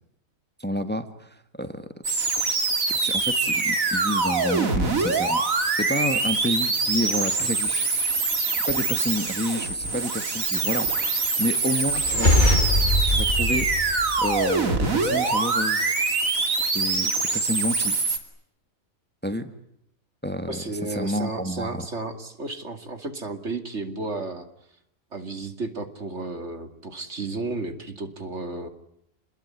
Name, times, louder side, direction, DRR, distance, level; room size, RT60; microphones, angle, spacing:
voice 1, 0.6-2.5 2.9-5.4 5.8-7.9 8.7-12.6 13.1-15.9 16.7-18.0 19.2-19.5 20.2-20.6 20.9-21.9, equal, 10° left, 9 dB, 1.6 m, -30 dB
sound 1, 2.0-18.2, right 3 dB, 80° right, 3.1 m, -24 dB
sound 2, 11.9-14.7, left 1 dB, 35° left, 1.8 m, -23 dB
voice 2, 20.5-24.5 25.1-28.7, right 3 dB, 55° right, 8 dB, 2.7 m, -33 dB
28.5 x 21.0 x 9.7 m, 0.77 s
omnidirectional pair, 1.4 m